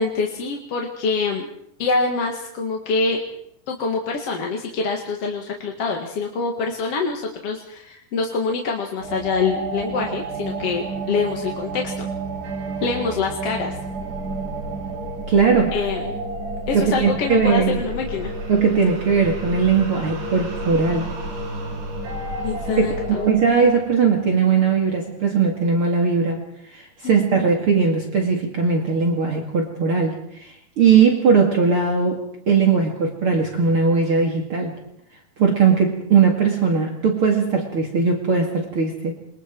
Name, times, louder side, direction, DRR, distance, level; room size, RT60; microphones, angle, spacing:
voice 1, 0.0-1.5 1.8-3.2 3.7-12.1 12.8-13.7 15.7-16.1 16.7-18.3 22.4-23.3 27.0-27.5, left 4 dB, 50° left, 1 dB, 2.7 m, -25 dB
sound 1, 9.0-25.3, right 2 dB, 85° right, 5.8 m, -31 dB
voice 2, 15.3-15.8 16.7-17.8 18.5-21.1 22.8-26.4 26.7-34.7 35.4-39.1, right 5 dB, 45° right, 0 dB, 2.9 m, -19 dB
28.0 x 23.5 x 4.6 m, 0.75 s
omnidirectional pair, 3.6 m